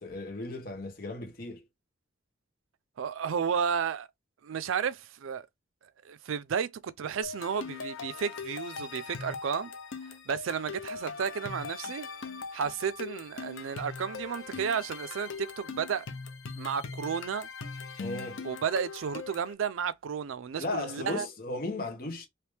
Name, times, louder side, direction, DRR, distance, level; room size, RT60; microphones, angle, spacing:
voice 1, 0.0-1.6 18.0-18.4 20.6-22.3, left 2 dB, 45° left, 1.1 m, -36 dB
voice 2, 3.0-4.1 4.4-5.5 6.0-9.7 10.3-12.1 12.5-16.1 16.6-17.5 18.4-21.3, right 7 dB, 80° right, 0.4 m, -32 dB
sound 1, 7.2-19.5, left 5 dB, 75° left, 0.7 m, -41 dB
3.3 x 2.9 x 3.2 m
head